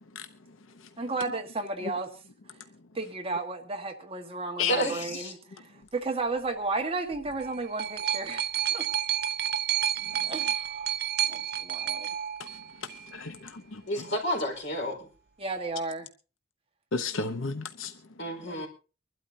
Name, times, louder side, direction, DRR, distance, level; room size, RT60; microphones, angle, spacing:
voice 1, 1.0-2.2 2.9-8.9 10.2-10.9 11.3-12.1 15.4-16.1 18.5-18.7, right 3 dB, 30° right, 1.5 m, -34 dB
voice 2, 4.7-5.3 13.9-15.1 18.2-18.7, equal, 65° left, 4.5 m, -30 dB
sound 1, 7.1-13.1 14.0-14.1, right 10 dB, 55° right, 0.6 m, -30 dB
voice 3, 12.8-13.8 16.9-17.9, left 5 dB, 90° left, 0.8 m, -32 dB
24.0 x 12.0 x 2.7 m
head